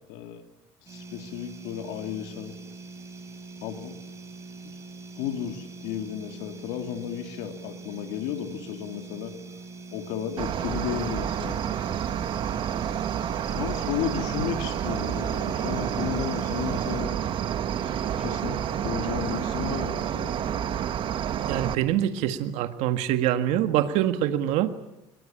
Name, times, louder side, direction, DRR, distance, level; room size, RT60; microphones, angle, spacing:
voice 1, 0.1-0.4 0.9-2.5 3.6-4.0 4.6-4.7 5.2-9.3 9.9-11.6 13.5-17.2 18.2-20.3, left 9 dB, 80° left, 6 dB, 2.7 m, -33 dB
sound 1, 0.9-17.0, right 3 dB, 25° right, 5.8 m, -43 dB
Cricket, 10.4-21.8, right 9 dB, 45° right, 1.7 m, -29 dB
voice 2, 21.5-24.7, right 11 dB, 70° right, 9 dB, 1.8 m, -25 dB
24.5 x 21.5 x 8.8 m, 0.92 s
cardioid pair, 125°, 12 cm